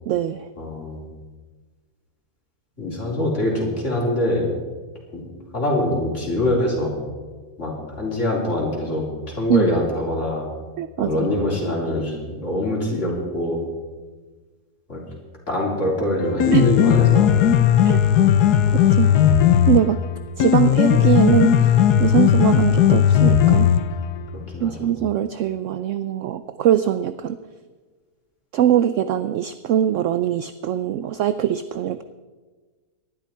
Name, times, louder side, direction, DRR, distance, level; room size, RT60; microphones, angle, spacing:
voice 1, 0.1-0.5 9.5-9.7 10.8-11.1 16.5-16.7 17.8-18.0 18.9-19.1 19.7-20.0 20.4-21.7 22.0-23.7 24.6-27.4 28.5-32.0, right 10 dB, 70° right, 12 dB, 0.7 m, -21 dB
voice 2, 0.6-1.0 2.8-4.5 5.1-5.3 5.5-6.9 7.6-10.4 11.0-13.6 14.9-15.0 15.5-17.3 24.3-24.9, left 1 dB, 45° left, -3 dB, 4.0 m, -24 dB
Piano, 16.2-24.2, left 9 dB, 75° left, 1.3 m, -16 dB
18.5 x 12.5 x 4.5 m, 1.4 s
omnidirectional pair, 1.7 m